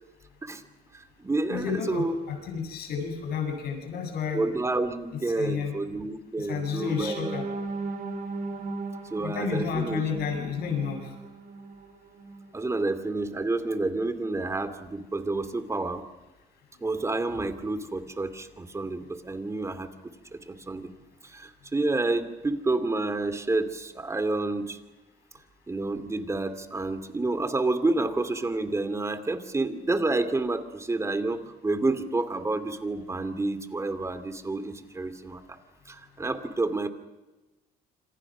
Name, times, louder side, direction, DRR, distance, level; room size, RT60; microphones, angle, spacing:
voice 1, 0.9-2.2 4.3-7.3 9.1-10.0 12.5-16.0 16.8-19.9 20.3-20.9 21.2-24.8 25.7-35.6 35.9-36.9, right 2 dB, 15° right, 10 dB, 2.7 m, -29 dB
voice 2, 1.5-4.4 5.3-5.7 6.4-7.4 9.2-11.1, left 6 dB, 70° left, 4 dB, 7.8 m, -31 dB
sound 1, 6.6-12.6 13.0-13.2 13.6-13.8, right 3 dB, 55° right, 5.7 m, -37 dB
27.0 x 26.5 x 6.3 m, 1.1 s
cardioid pair, 110°, 17 cm